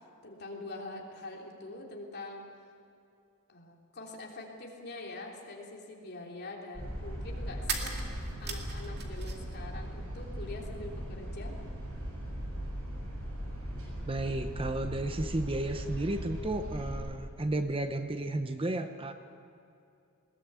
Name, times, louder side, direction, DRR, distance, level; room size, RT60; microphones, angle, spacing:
voice 1, 0.2-2.5 3.5-7.9 8.4-11.5, left 2 dB, 45° left, -1 dB, 3.3 m, -44 dB
sound 1, 6.7-16.9, equal, 70° right, 7.0 m, -39 dB
sound 2, 7.7-9.6 9.8-10.7, right 5 dB, 50° right, 2.4 m, -39 dB
voice 2, 14.1-19.1, right 1 dB, 25° right, 8 dB, 0.8 m, -33 dB
20.5 x 19.0 x 8.2 m, 2.6 s
head